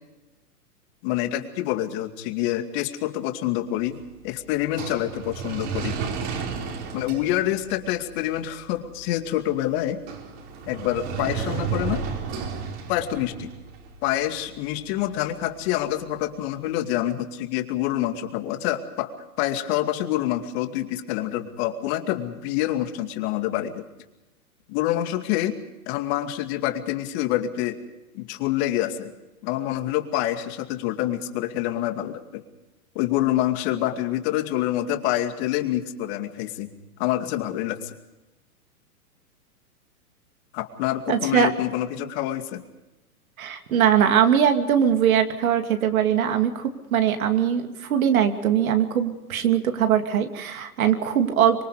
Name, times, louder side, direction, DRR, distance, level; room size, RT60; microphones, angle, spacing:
voice 1, 1.0-6.0 6.9-10.0 10.7-12.0 12.9-13.5 14.0-19.1 19.4-23.8 24.7-25.6 25.9-27.8 28.1-29.1 29.4-32.4 32.9-36.7 37.0-37.9 40.5-42.6, left 13 dB, 45° left, 7 dB, 2.5 m, -26 dB
sound 1, 3.6-16.7, right 6 dB, 45° right, 4.6 m, -35 dB
voice 2, 41.1-41.5 43.4-51.6, right 9 dB, 65° right, 6 dB, 2.7 m, -21 dB
25.5 x 23.0 x 5.1 m, 1.0 s
hypercardioid pair, 115°, 45 cm